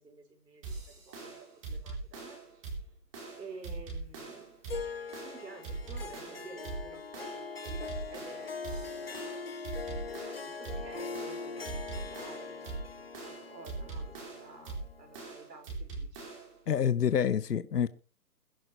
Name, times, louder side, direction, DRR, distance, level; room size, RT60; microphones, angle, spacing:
voice 1, 0.0-2.8 3.4-4.6 5.2-9.3 10.4-16.3, right 3 dB, 85° right, 5.8 m, -51 dB
sound 1, 0.6-16.6, right 3 dB, 20° right, 4.1 m, -42 dB
Harp, 4.7-15.3, left 5 dB, 40° left, 0.6 m, -42 dB
voice 2, 16.7-17.9, left 8 dB, 75° left, 1.1 m, -27 dB
21.5 x 11.0 x 3.3 m
hypercardioid pair, 175°, 48 cm